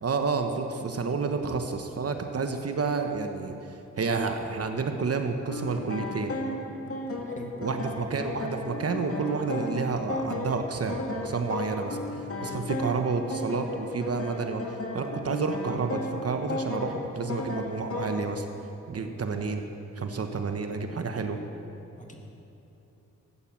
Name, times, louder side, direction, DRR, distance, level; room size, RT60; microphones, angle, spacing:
voice 1, 0.0-6.4 7.6-12.0 12.4-14.6 14.9-18.5 18.9-19.6 20.0-21.4, right 4 dB, 50° right, 6 dB, 1.1 m, -30 dB
sound 1, 5.5-18.3, left 2 dB, 45° left, 2.1 m, -35 dB
voice 2, 7.3-7.5 12.4-12.6 22.0-22.2, left 1 dB, 25° left, 2 dB, 2.2 m, -42 dB
14.0 x 8.7 x 7.4 m, 3.0 s
cardioid pair, 60°, 31 cm